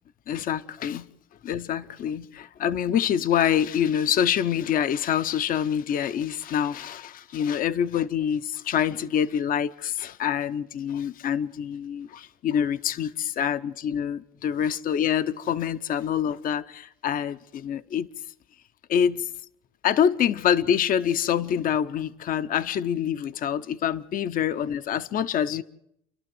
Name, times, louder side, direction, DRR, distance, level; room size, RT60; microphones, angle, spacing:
voice 1, 0.3-1.1 1.4-18.1 18.9-19.3 19.8-25.6, left 9 dB, 55° left, 0.8 m, -26 dB
29.5 x 12.0 x 7.8 m
cardioid pair, 110°, 17 cm